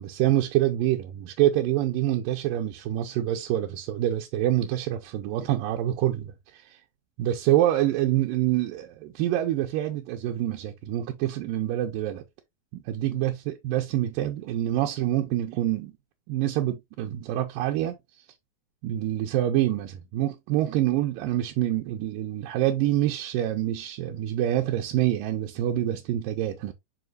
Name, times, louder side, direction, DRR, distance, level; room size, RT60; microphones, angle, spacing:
voice 1, 0.0-6.8 7.2-12.2 12.7-15.9 16.3-18.0 18.8-26.7, right 13 dB, 80° right, 2.3 m, -26 dB
7.9 x 5.3 x 2.4 m
omnidirectional pair, 4.1 m